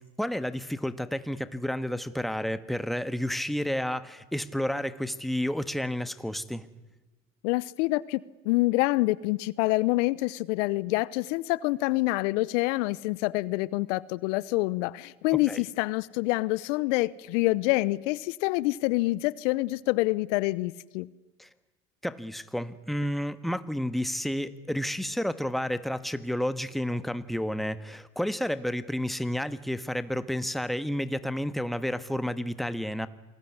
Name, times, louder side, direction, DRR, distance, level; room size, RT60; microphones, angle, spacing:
voice 1, 0.2-6.7 15.5-15.6 21.4-21.5 22.0-33.1, equal, ahead, 12 dB, 1.5 m, -31 dB
voice 2, 7.4-21.1, left 20 dB, 70° left, 20 dB, 1.0 m, -27 dB
28.0 x 21.0 x 9.7 m, 1.1 s
hypercardioid pair, 80°, 38 cm